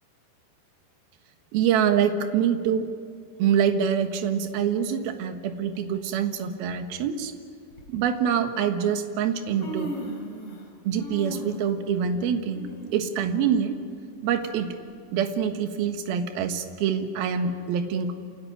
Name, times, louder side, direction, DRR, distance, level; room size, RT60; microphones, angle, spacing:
voice 1, 1.5-2.9 3.4-7.3 7.9-9.9 10.8-13.8 14.2-14.7 15.1-18.1, right 8 dB, 65° right, 6 dB, 2.9 m, -25 dB
Human voice, 5.7-6.0 7.0-7.1 7.7-7.9 8.9-9.0 9.3-10.7 11.0-14.5 14.9-15.0 15.8-15.9, right 1 dB, 35° left, 4.5 m, -38 dB
27.5 x 19.0 x 9.2 m, 2.3 s
omnidirectional pair, 5.4 m